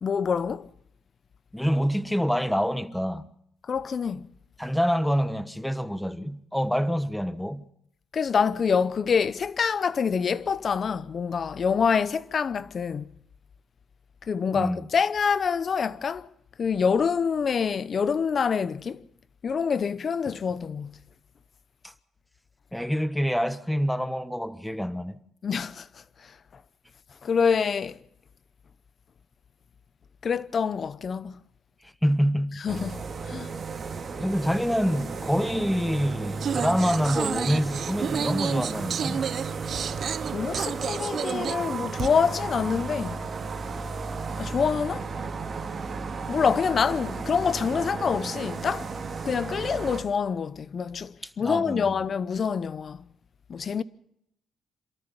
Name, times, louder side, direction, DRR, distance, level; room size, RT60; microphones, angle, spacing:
voice 1, 0.0-0.7 3.7-4.3 8.1-13.1 14.3-16.3 16.6-19.1 19.4-21.0 25.4-25.9 26.2-26.3 27.2-28.0 30.2-31.4 32.6-33.5 40.3-43.3 44.4-45.1 46.3-48.9 49.2-53.0 53.5-53.8, left 6 dB, 45° left, 0.8 m, -26 dB
voice 2, 1.5-3.3 4.6-7.6 14.5-14.8 21.8-21.9 22.7-25.2 32.0-32.6 34.2-39.3 51.4-52.0, equal, 5° left, 1.2 m, -26 dB
sound 1, 32.7-50.0, right 4 dB, 40° right, 3.6 m, -34 dB
sound 2, 36.4-42.1, right 7 dB, 55° right, 0.8 m, -31 dB
27.5 x 13.5 x 7.0 m
cardioid pair, 90°, 0 cm